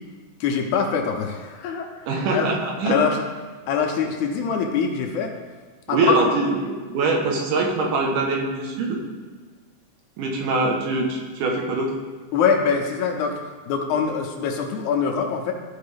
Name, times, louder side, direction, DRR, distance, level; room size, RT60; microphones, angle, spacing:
voice 1, 0.4-1.9 2.1-2.5 2.9-3.2 3.7-5.3 5.9-6.2 12.3-13.4 13.7-15.5, left 6 dB, 80° left, 2 dB, 2.1 m, -23 dB
voice 2, 2.1-3.0 5.9-9.0 10.2-11.9, right 3 dB, 90° right, 0 dB, 2.7 m, -23 dB
13.0 x 4.5 x 3.4 m, 1.4 s
omnidirectional pair, 3.5 m